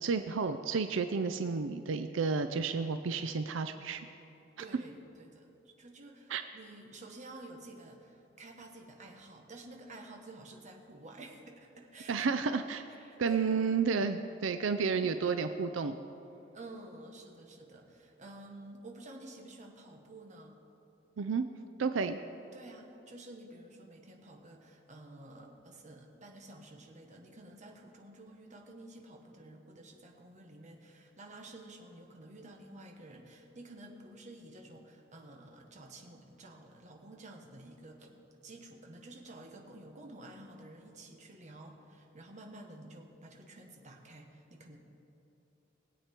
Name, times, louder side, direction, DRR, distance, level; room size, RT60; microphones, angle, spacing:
voice 1, 0.0-4.1 6.3-6.4 12.1-12.8 13.2-15.9 21.2-21.4 21.8-22.2, right 5 dB, 85° right, 9 dB, 0.5 m, -31 dB
voice 2, 4.6-12.3 12.9-13.8 16.5-20.6 22.5-38.2 38.4-44.8, right 2 dB, 40° right, 2 dB, 1.4 m, -51 dB
20.5 x 8.4 x 4.5 m, 2.9 s
head